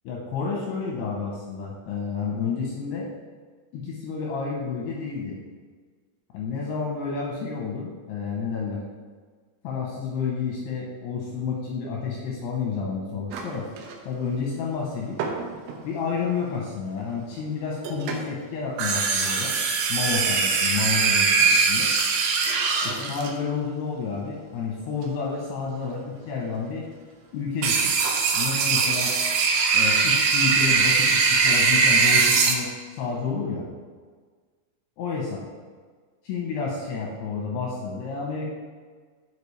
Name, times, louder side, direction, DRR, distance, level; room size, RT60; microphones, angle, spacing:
voice 1, 0.0-3.1 3.7-5.4 6.3-8.8 9.6-13.7 14.1-15.2 15.8-19.5 19.9-21.9 22.8-26.9 27.3-27.9 28.3-29.2 29.7-33.7 35.0-35.4 36.2-38.5, left 5 dB, 80° left, -2 dB, 2.4 m, -30 dB
sound 1, 13.3-13.9 15.2-15.8 17.8-18.3 18.8-23.3 27.6-32.5, right 5 dB, 80° right, 3.2 m, -21 dB
12.5 x 4.8 x 3.3 m, 1.5 s
omnidirectional pair, 5.9 m